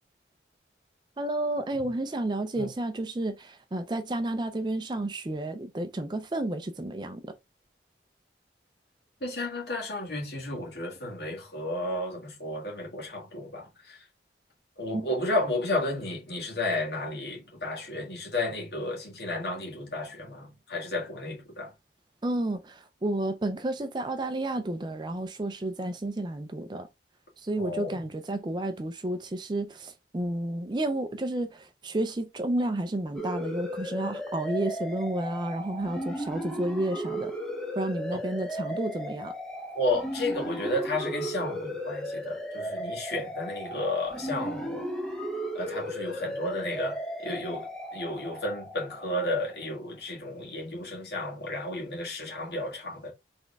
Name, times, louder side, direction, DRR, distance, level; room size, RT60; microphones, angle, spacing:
voice 1, 1.2-7.3 14.9-15.1 22.2-26.9 27.4-37.3 37.8-39.3, right 1 dB, 25° right, 0.4 m, -31 dB
voice 2, 9.2-14.0 14.8-21.7 27.6-28.0 39.7-44.9 45.5-53.1, left 1 dB, 65° left, 1.8 m, -32 dB
sound 1, 33.2-49.6, equal, 5° left, 0.8 m, -35 dB
4.2 x 3.5 x 3.4 m
head